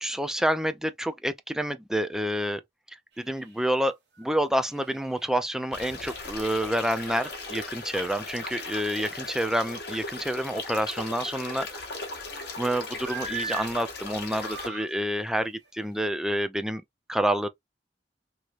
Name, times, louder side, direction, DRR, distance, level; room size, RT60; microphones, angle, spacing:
voice 1, 0.0-2.6 3.2-11.7 12.6-16.8 17.1-17.5, equal, 5° right, 0.3 m, -28 dB
sound 1, 3.2-3.7 4.2-4.3 4.6-8.0 10.5-11.2 11.7-12.6 13.0-13.7 14.2-14.9 15.7-15.9, right 6 dB, 70° right, 1.3 m, -42 dB
sound 2, 5.7-14.7, left 3 dB, 65° left, 1.1 m, -38 dB
3.1 x 2.9 x 2.4 m
head